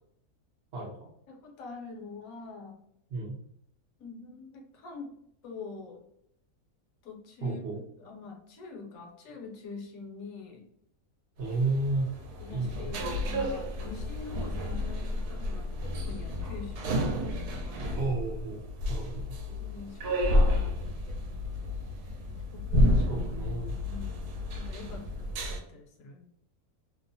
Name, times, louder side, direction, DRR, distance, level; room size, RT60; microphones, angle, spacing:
voice 1, 0.7-1.1 3.1-3.4 7.4-7.8 11.4-12.1 12.5-12.9 18.0-18.6 18.9-19.4 22.9-23.8, right 3 dB, 60° right, -4 dB, 0.6 m, -32 dB
voice 2, 1.3-2.8 4.0-5.1 5.4-6.0 7.0-10.7 12.4-18.1 19.6-21.9 22.5-23.1 23.9-24.2 24.5-26.3, left 4 dB, 70° left, 1 dB, 1.1 m, -45 dB
sound 1, 11.4-25.6, left 1 dB, 80° right, 1.0 m, -30 dB
2.8 x 2.0 x 2.5 m, 0.73 s
omnidirectional pair, 1.6 m